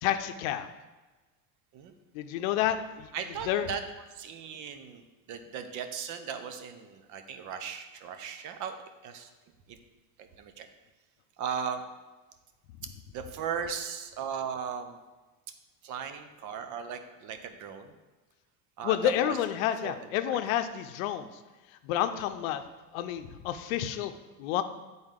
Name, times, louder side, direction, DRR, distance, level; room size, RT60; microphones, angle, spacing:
voice 1, 0.0-0.7 2.1-3.1 3.5-3.7 18.8-21.3 21.8-22.6 22.9-24.1 24.4-24.6, left 11 dB, 85° left, 9 dB, 0.6 m, -29 dB
voice 2, 3.1-8.8 9.0-9.3 9.7-9.8 10.2-10.7 11.4-11.8 13.1-15.0 15.8-17.9 18.8-19.4 19.8-20.4, right 7 dB, 50° right, 8 dB, 0.8 m, -37 dB
8.7 x 4.0 x 3.7 m, 1.2 s
supercardioid pair, 130°, 40 cm